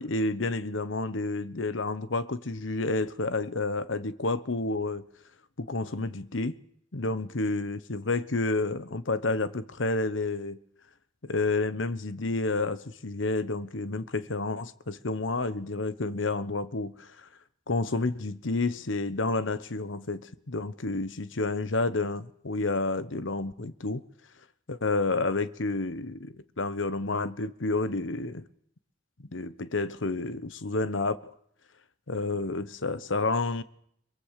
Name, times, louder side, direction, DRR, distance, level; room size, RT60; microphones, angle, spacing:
voice 1, 0.0-5.0 5.6-6.6 6.9-10.6 11.2-17.3 17.7-24.0 24.7-28.4 29.3-31.3 32.1-33.6, left 3 dB, 75° left, 1.1 m, -30 dB
23.5 x 22.5 x 6.7 m
head